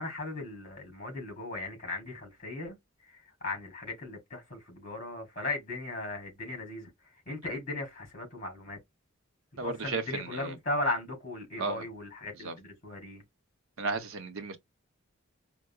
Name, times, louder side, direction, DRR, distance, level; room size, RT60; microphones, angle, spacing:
voice 1, 0.0-8.8 9.6-13.2, left 2 dB, 35° left, 2.5 m, -37 dB
voice 2, 9.6-10.6 11.6-11.8 12.4-12.5 13.8-14.6, right 3 dB, 75° right, 0.8 m, -34 dB
4.6 x 2.0 x 2.3 m
head